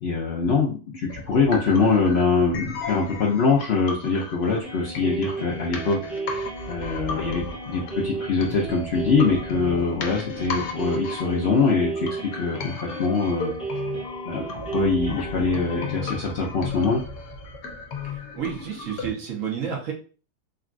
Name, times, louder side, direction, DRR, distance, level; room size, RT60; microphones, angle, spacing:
voice 1, 0.0-12.1 12.4-13.5 14.2-17.0, left 4 dB, 60° left, -3 dB, 0.7 m, -23 dB
sound 1, 1.1-19.1, left 4 dB, 75° left, 1.1 m, -36 dB
sound 2, 4.6-16.1, right 3 dB, ahead, 0.7 m, -34 dB
voice 2, 18.0-19.9, right 8 dB, 60° right, -1 dB, 1.2 m, -31 dB
3.8 x 2.3 x 2.5 m, 0.37 s
omnidirectional pair, 1.6 m